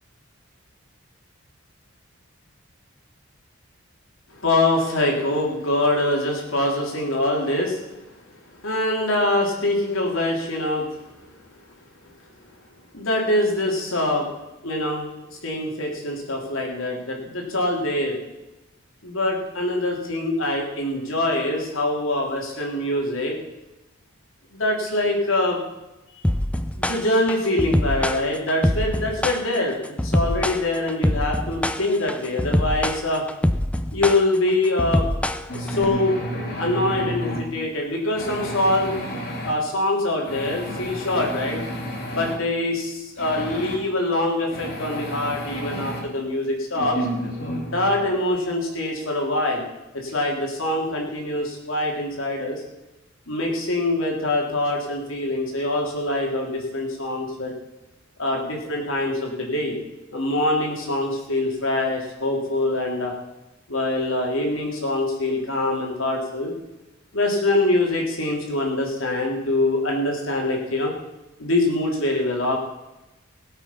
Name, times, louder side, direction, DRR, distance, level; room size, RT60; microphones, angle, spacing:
voice 1, 4.3-7.8 8.6-11.0 12.9-14.3 14.6-18.2 19.0-23.4 24.5-25.6 26.1-26.2 26.8-33.2 33.9-35.1 35.5-36.2 36.6-38.9 39.4-41.6 42.1-47.1 47.7-49.6 49.9-52.6 53.3-57.5 58.2-59.8 60.1-63.1 63.7-66.5 67.1-70.9 71.4-72.5, left 1 dB, 75° left, 0 dB, 3.5 m, -24 dB
sound 1, 26.2-35.8, left 1 dB, 5° left, 0.5 m, -24 dB
sound 2, 35.5-37.5 38.1-39.5 40.3-42.4 43.2-43.8 44.5-46.0 46.7-48.0, equal, 50° left, 2.7 m, -31 dB
19.0 x 8.1 x 5.8 m, 1.0 s
head